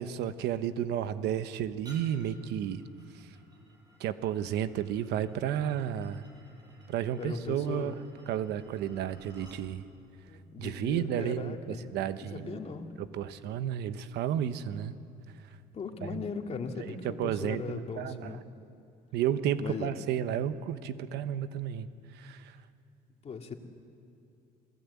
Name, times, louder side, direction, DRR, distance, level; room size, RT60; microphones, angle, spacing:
voice 1, 0.0-2.8 4.0-6.2 6.9-7.9 8.3-9.8 10.6-12.6 13.0-14.9 16.0-16.2 16.8-18.4 19.1-21.9 22.1-22.6, right 10 dB, 85° right, 12 dB, 1.1 m, -32 dB
sound 1, 1.8-9.6, right 1 dB, 25° right, 6.2 m, -58 dB
voice 2, 7.2-8.0 10.3-11.8 12.2-12.9 15.7-18.4 19.6-19.9 23.2-23.5, left 5 dB, 40° left, 4 dB, 2.2 m, -38 dB
28.0 x 18.0 x 8.4 m, 2.7 s
cardioid pair, 110°, 17 cm